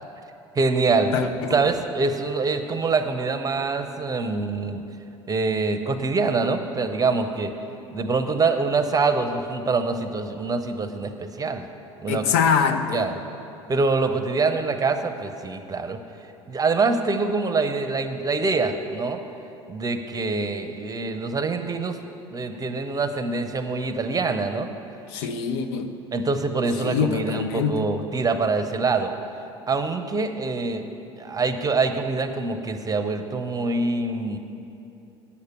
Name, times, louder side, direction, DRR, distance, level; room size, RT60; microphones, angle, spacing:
voice 1, 0.5-1.1 1.5-4.8 5.3-7.5 7.9-11.7 12.0-12.2 12.9-13.1 13.7-16.0 16.5-19.2 19.7-22.0 22.3-24.7 25.1-25.3 26.1-29.1 29.7-30.8 31.2-34.4, right 3 dB, 25° right, 8 dB, 0.8 m, -25 dB
voice 2, 1.1-1.6 12.1-13.1 25.1-26.0 26.8-27.9, left 6 dB, 70° left, 8 dB, 0.6 m, -24 dB
8.4 x 6.6 x 8.5 m, 2.8 s
hypercardioid pair, 65°, 14 cm